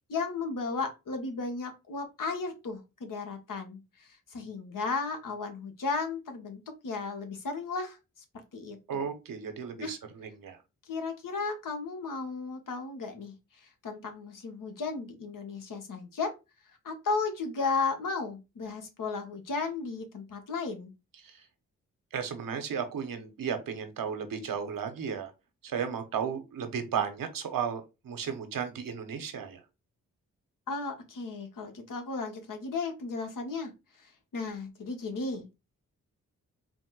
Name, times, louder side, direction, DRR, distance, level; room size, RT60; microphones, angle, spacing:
voice 1, 0.1-8.0 8.5-9.1 9.8-9.9 10.8-16.3 16.8-20.9 30.7-33.7 34.0-35.5, left 4 dB, 70° left, 5 dB, 1.2 m, -35 dB
voice 2, 8.9-10.6 21.2-21.4 22.1-25.3 25.6-29.6, right 7 dB, 75° right, 7 dB, 1.0 m, -34 dB
4.2 x 2.1 x 4.6 m, 0.26 s
supercardioid pair, 40°, 34 cm